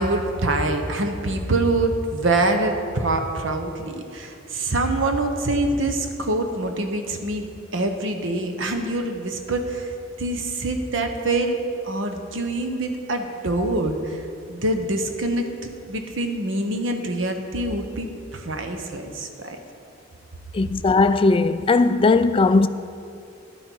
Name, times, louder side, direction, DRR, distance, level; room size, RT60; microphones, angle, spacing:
voice 1, 0.0-9.9 10.2-11.6 11.8-14.2 14.5-19.6, right 2 dB, 70° right, 1.0 m, -25 dB
voice 2, 20.5-22.7, left 3 dB, 25° left, 0.3 m, -18 dB
11.0 x 9.3 x 4.6 m
head